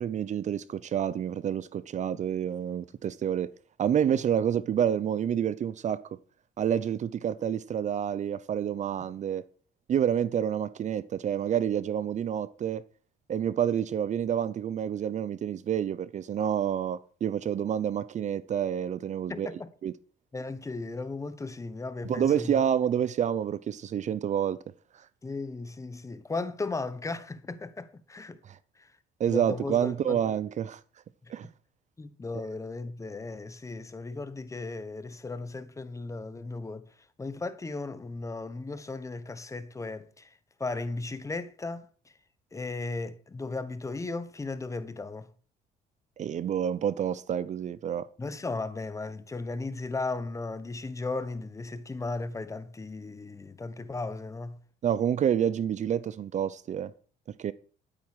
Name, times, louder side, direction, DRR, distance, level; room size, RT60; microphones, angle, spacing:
voice 1, 0.0-3.5 3.8-6.0 6.6-9.4 9.9-12.8 13.3-19.5 19.8-19.9 22.0-24.6 28.5-28.6 29.2-30.8 31.3-31.5 46.2-48.1 54.8-56.9 57.3-57.5, right 9 dB, 45° right, 0.7 m, -28 dB
voice 2, 19.3-19.7 20.3-22.6 25.2-28.4 28.8-28.9 29.3-30.2 32.0-36.9 37.2-41.9 42.5-45.3 48.2-54.6, left 3 dB, 20° left, 1.2 m, -36 dB
12.0 x 9.0 x 6.3 m
cardioid pair, 110°, 17 cm